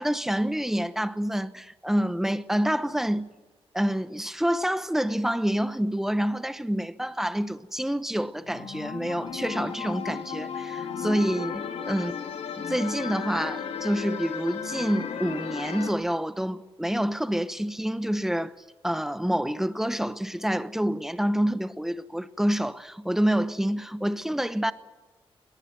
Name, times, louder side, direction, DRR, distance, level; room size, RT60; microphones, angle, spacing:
voice 1, 0.0-3.3 3.7-12.1 12.6-18.5 18.8-24.7, equal, 5° right, 1.0 m, -27 dB
sound 1, 8.4-15.9, left 7 dB, 75° left, 2.6 m, -34 dB
21.5 x 19.0 x 9.5 m
wide cardioid pair, 120°, 10 cm